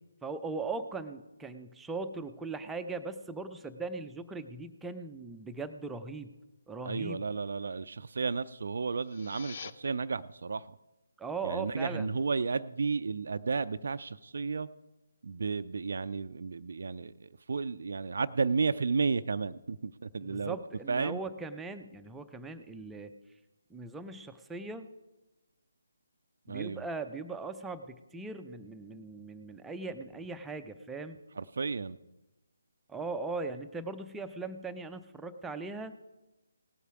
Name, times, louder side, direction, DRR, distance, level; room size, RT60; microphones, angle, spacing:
voice 1, 0.2-6.3 6.7-7.2 11.2-12.2 20.2-23.1 23.7-24.9 26.5-31.2 32.9-35.9, right 3 dB, 5° right, 7 dB, 0.5 m, -39 dB
voice 2, 6.8-10.8 11.4-14.7 15.2-20.6 20.9-21.2 26.5-26.9 31.4-32.0, right 4 dB, 55° right, 11 dB, 0.4 m, -33 dB
sound 1, 8.9-9.7, left 7 dB, 40° left, 0.5 m, -45 dB
18.0 x 8.1 x 4.7 m, 1.0 s
figure-of-eight pair, 145°, 0 cm